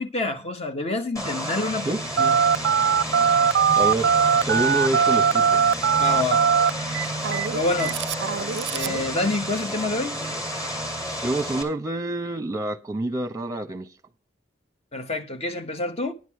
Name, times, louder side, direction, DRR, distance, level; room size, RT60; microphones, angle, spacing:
voice 1, 0.0-2.4 6.0-6.4 7.5-8.0 8.7-10.2 14.9-16.1, left 2 dB, 35° left, 1.1 m, -27 dB
Vehicle, 1.2-11.6, equal, 20° left, 2.4 m, -31 dB
Telephone, 2.2-9.0, right 7 dB, 70° right, 0.4 m, -21 dB
voice 2, 3.8-4.1 4.4-5.6 11.2-13.9, right 2 dB, 20° right, 0.9 m, -27 dB
11.0 x 8.2 x 4.7 m
head